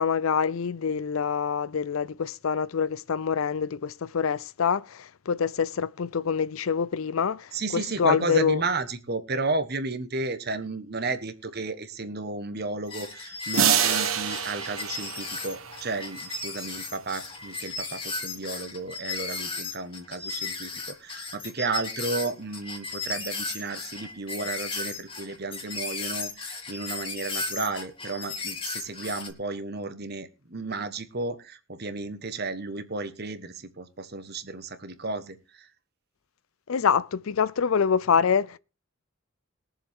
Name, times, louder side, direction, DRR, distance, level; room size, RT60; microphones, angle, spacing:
voice 1, 0.0-8.6 36.7-38.6, left 6 dB, 80° left, 0.5 m, -26 dB
voice 2, 7.5-35.7, right 3 dB, 50° right, 1.4 m, -33 dB
sound 1, 12.9-29.3, left 4 dB, 25° left, 2.2 m, -35 dB
sound 2, 13.5-16.3, right 8 dB, 80° right, 1.3 m, -26 dB
21.5 x 7.2 x 3.6 m
head